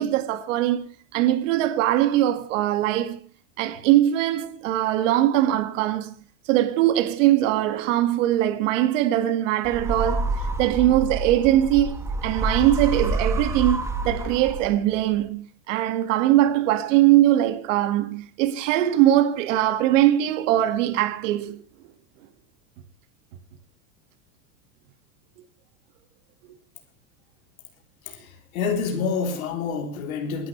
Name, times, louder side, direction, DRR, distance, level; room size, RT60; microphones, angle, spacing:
voice 1, 0.0-3.2 3.6-6.2 6.5-21.6, right 13 dB, 65° right, 2.1 m, -21 dB
sound 1, 9.6-15.0, right 3 dB, 5° right, 1.4 m, -28 dB
voice 2, 28.0-30.5, left 5 dB, 90° left, 3.7 m, -28 dB
28.5 x 11.5 x 3.3 m
supercardioid pair, 155°, 41 cm